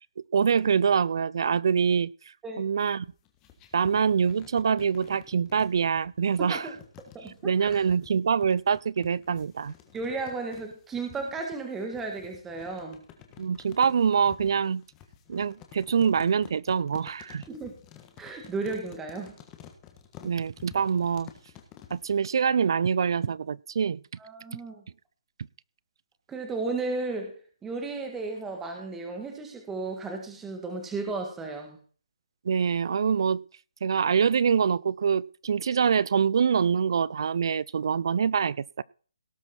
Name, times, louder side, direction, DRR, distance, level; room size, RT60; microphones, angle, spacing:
voice 1, 0.3-2.1 2.6-3.1 3.7-6.7 7.4-9.7 13.4-14.8 15.3-17.4 20.2-21.3 21.9-24.0 32.4-33.4 33.8-38.8, right 6 dB, 50° right, 0.4 m, -25 dB
sound 1, 3.0-22.2, left 10 dB, 15° left, 1.4 m, -51 dB
voice 2, 6.4-6.8 7.1-7.8 9.9-13.0 17.5-17.7 18.2-19.3 24.2-24.8 26.3-27.4 27.6-31.8, right 3 dB, 5° right, 1.7 m, -34 dB
18.0 x 6.2 x 4.4 m
hypercardioid pair, 170°, 3 cm